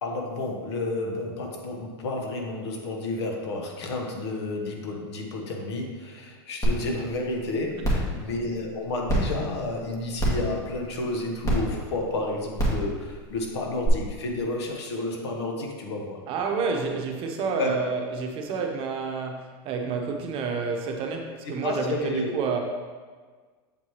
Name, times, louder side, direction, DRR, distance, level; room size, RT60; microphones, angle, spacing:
voice 1, 0.0-16.2 17.6-17.9 21.4-22.4, left 2 dB, 80° left, 2 dB, 1.2 m, -31 dB
sound 1, 6.6-6.7 7.2-7.3 7.8-8.1 9.1-9.2 10.2-10.5 11.4-11.5 12.5-12.8 13.8-13.9, right 1 dB, 25° left, 1.9 m, -23 dB
voice 2, 16.3-22.0 22.3-22.6, right 5 dB, 40° right, 3 dB, 0.9 m, -29 dB
7.4 x 4.6 x 3.0 m, 1.5 s
supercardioid pair, 125°, 14 cm